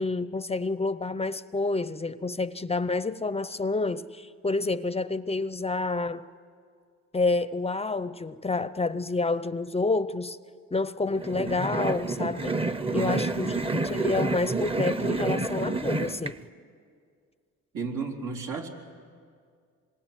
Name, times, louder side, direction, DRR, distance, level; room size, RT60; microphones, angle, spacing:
voice 1, 0.0-6.3 7.1-10.4 10.7-12.6 12.9-13.5 13.8-16.4, left 3 dB, 20° left, 0.6 m, -28 dB
sound 1, 11.2-16.3, right 3 dB, 20° right, 0.9 m, -29 dB
voice 2, 12.9-13.6 17.7-18.7, right 4 dB, 80° right, 4.0 m, -33 dB
26.0 x 24.0 x 9.2 m
cardioid pair, 90°, 30 cm